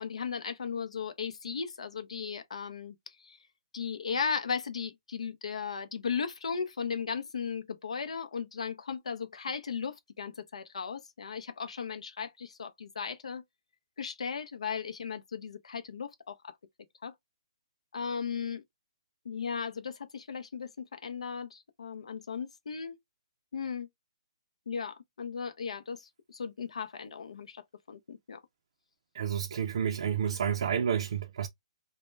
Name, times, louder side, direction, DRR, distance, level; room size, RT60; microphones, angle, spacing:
voice 1, 0.0-3.4 3.7-13.4 14.0-16.5 17.0-17.1 17.9-18.6 19.2-23.0 23.5-23.9 24.7-27.6 27.9-28.4, left 6 dB, 85° left, 0.5 m, -36 dB
voice 2, 29.1-31.5, right 8 dB, 65° right, 0.3 m, -30 dB
2.1 x 2.0 x 3.0 m
hypercardioid pair, 155°, 3 cm